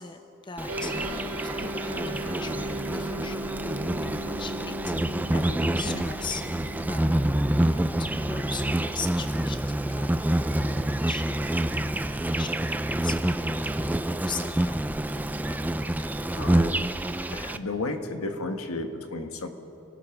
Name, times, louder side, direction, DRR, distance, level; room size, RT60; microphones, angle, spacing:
voice 1, 0.0-3.4 4.0-5.0 5.3-6.5 6.9-7.4 7.7-14.8, left 5 dB, 20° left, 7 dB, 0.8 m, -40 dB
Insect, 0.6-17.6, right 1 dB, 5° right, 0.4 m, -27 dB
sound 1, 0.7-12.2, right 1 dB, 70° right, 2.5 m, -39 dB
voice 2, 15.9-17.0 17.3-19.5, left 2 dB, 75° left, 6 dB, 1.6 m, -34 dB
29.0 x 18.0 x 6.0 m, 3.0 s
head